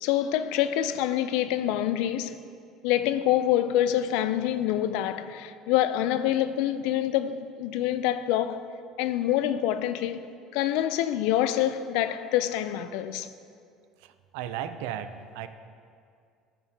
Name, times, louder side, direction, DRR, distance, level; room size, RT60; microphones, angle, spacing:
voice 1, 0.0-2.4 2.8-8.7 9.0-13.3, left 12 dB, 75° left, 0.3 m, -26 dB
voice 2, 14.0-15.5, right 9 dB, 85° right, 0.4 m, -35 dB
14.0 x 5.5 x 2.8 m
cardioid pair, 135°, 0 cm